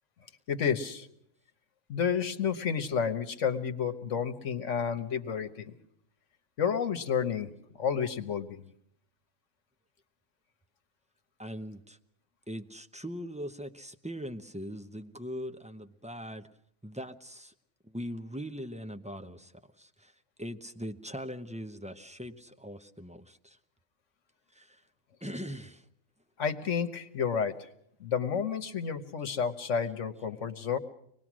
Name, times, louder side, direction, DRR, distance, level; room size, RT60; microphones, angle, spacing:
voice 1, 0.5-1.1 1.9-5.7 6.6-7.5 7.8-8.7 26.4-27.7 28.0-30.8, left 7 dB, 65° left, 9 dB, 1.5 m, -30 dB
voice 2, 11.4-12.0 12.5-16.4 16.8-17.5 17.8-20.1 20.4-23.6 24.5-24.8 25.2-25.9, equal, 5° right, 6 dB, 0.8 m, -41 dB
24.5 x 19.5 x 6.2 m, 0.71 s
omnidirectional pair, 1.4 m